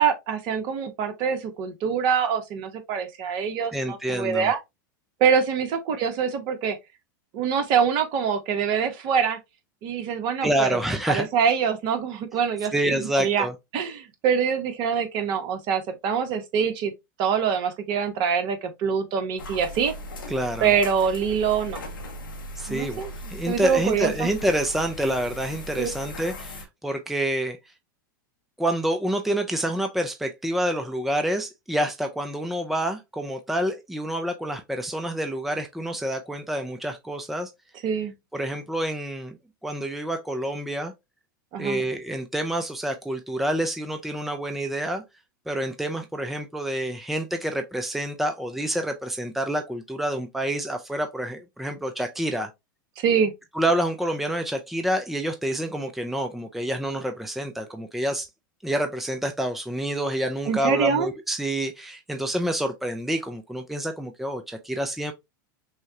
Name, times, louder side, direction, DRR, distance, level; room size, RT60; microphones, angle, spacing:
voice 1, 0.0-4.6 5.2-6.8 7.3-9.4 9.8-10.8 11.1-13.5 13.7-16.9 17.2-19.9 20.6-21.8 22.7-23.1 23.5-24.3 25.8-25.9 37.8-38.1 41.5-41.8 53.0-53.3 60.5-61.1, right 7 dB, 50° right, 1.2 m, -24 dB
voice 2, 3.7-4.5 10.4-11.3 12.7-13.5 20.3-20.7 22.6-23.0 23.3-27.6 28.6-37.5 38.3-39.4 39.6-40.9 41.6-45.0 45.5-52.5 53.5-58.3 58.6-65.1, right 1 dB, ahead, 0.6 m, -27 dB
sound 1, 19.4-26.6, left 1 dB, 90° left, 1.2 m, -38 dB
6.2 x 2.3 x 2.8 m
hypercardioid pair, 100°, 11 cm